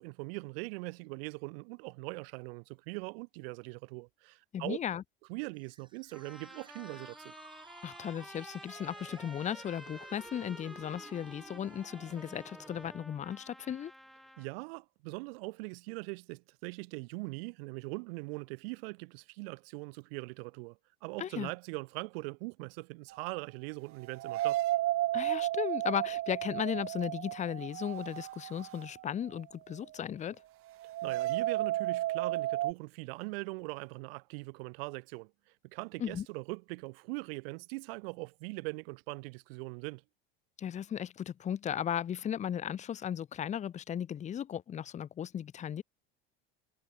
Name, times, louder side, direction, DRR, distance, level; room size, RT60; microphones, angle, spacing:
voice 1, 0.0-4.8 5.3-7.3 14.4-24.6 31.0-35.3 35.6-40.0, right 28 dB, 75° right, 1.2 m, -41 dB
voice 2, 4.5-5.0 7.8-13.9 21.2-21.5 25.1-30.4 36.0-36.3 40.6-45.8, left 9 dB, 25° left, 0.5 m, -36 dB
sound 1, 5.6-13.0, right 3 dB, 15° right, 4.0 m, -54 dB
sound 2, 6.1-14.5, equal, ahead, 7.5 m, -51 dB
sound 3, 23.1-23.2 24.1-29.0 29.4-29.5 30.8-32.7, right 15 dB, 45° right, 1.0 m, -33 dB
hypercardioid pair, 90°, 30 cm